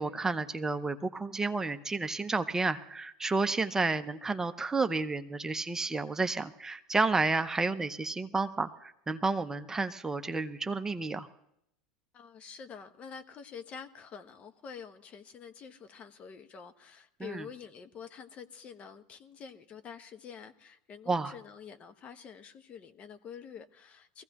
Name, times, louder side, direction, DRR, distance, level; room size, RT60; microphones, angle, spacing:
voice 1, 0.0-11.3 17.2-17.5 21.1-21.3, right 3 dB, 15° right, 9 dB, 0.7 m, -31 dB
voice 2, 12.1-24.2, left 6 dB, 40° left, 9 dB, 1.1 m, -47 dB
22.5 x 15.5 x 3.0 m, 0.76 s
hypercardioid pair, 85°, 4 cm